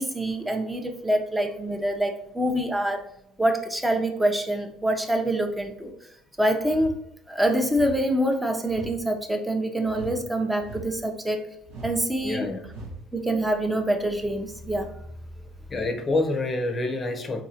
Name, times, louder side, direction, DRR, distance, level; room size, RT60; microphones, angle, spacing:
voice 1, 0.0-3.0 3.4-5.9 6.4-7.0 7.3-11.5 11.8-12.5 13.1-14.9, right 1 dB, 10° right, 4 dB, 0.7 m, -25 dB
sound 1, 6.6-7.0 7.7-8.0 8.7-9.0 9.8-10.2 10.6-11.0 11.6-12.0 12.6-13.0, right 1 dB, 75° right, 1.2 m, -40 dB
voice 2, 12.2-12.6 15.7-17.4, left 2 dB, 30° left, 5 dB, 0.7 m, -27 dB
3.8 x 2.7 x 2.8 m, 0.76 s
hypercardioid pair, 65°, 0 cm